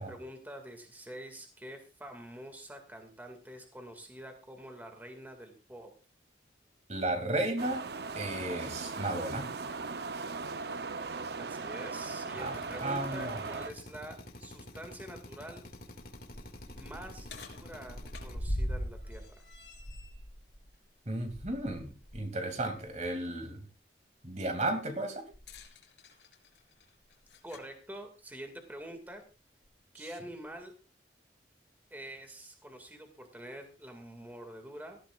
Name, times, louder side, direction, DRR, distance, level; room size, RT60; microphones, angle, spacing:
voice 1, 0.0-5.9 11.4-15.6 16.7-19.3 27.4-29.2 29.9-30.7 31.9-35.0, right 1 dB, 10° right, 4 dB, 2.1 m, -46 dB
voice 2, 6.9-7.8 8.2-9.5 12.4-13.4 21.1-23.7 24.2-25.3, right 1 dB, 40° right, 5 dB, 2.5 m, -34 dB
sound 1, 7.6-13.7, right 4 dB, 60° right, 0.7 m, -38 dB
Drill, 12.4-18.4, left 1 dB, 55° left, 2.1 m, -49 dB
sound 2, 16.1-22.3 22.7-22.9 25.3-27.7 28.7-28.8 29.6-29.7, equal, 80° left, 3.5 m, -41 dB
17.5 x 15.0 x 2.4 m, 0.32 s
head